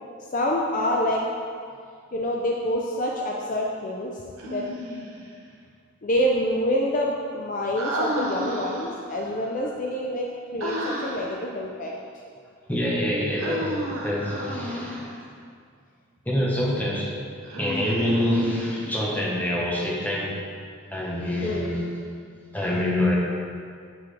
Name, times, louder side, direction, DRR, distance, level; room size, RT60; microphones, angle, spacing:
voice 1, 0.3-1.2 2.1-4.1 4.4-4.6 6.0-11.9 21.4-21.7, left 1 dB, 40° left, -1 dB, 0.5 m, -26 dB
Human voice, 4.4-5.3 7.8-9.1 10.6-11.4 13.4-15.2 17.4-19.0, right 1 dB, 80° right, 1.0 m, -32 dB
voice 2, 12.7-13.8 14.0-15.1 16.3-17.2 17.6-20.4 20.9-21.8 22.5-23.2, left 1 dB, 10° left, -4 dB, 0.9 m, -26 dB
7.0 x 6.1 x 3.3 m, 2.2 s
head